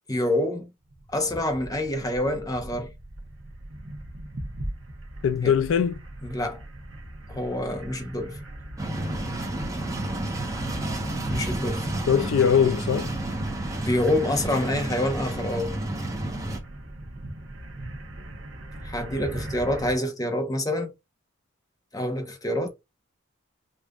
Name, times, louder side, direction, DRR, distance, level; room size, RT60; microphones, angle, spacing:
voice 1, 0.1-0.7 1.1-2.9 5.4-5.5 6.2-6.6 7.3-8.4 11.3-11.9 13.8-15.8 18.8-20.9 21.9-22.7, left 1 dB, 20° left, 0.8 m, -27 dB
sound 1, 0.9-20.0, right 1 dB, 60° right, 1.0 m, -39 dB
voice 2, 5.2-6.0 12.1-13.1, left 7 dB, 70° left, 0.3 m, -21 dB
sound 2, 8.8-16.6, right 1 dB, 15° right, 1.0 m, -31 dB
5.1 x 2.5 x 2.3 m
head